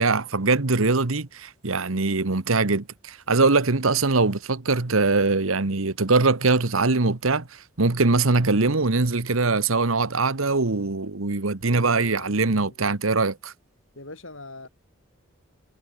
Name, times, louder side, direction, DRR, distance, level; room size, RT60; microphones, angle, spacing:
voice 1, 0.0-7.5 7.8-13.5, right 3 dB, 90° right, 1.4 m, -22 dB
voice 2, 11.7-13.0 14.0-14.7, left 2 dB, 70° left, 7.2 m, -43 dB
head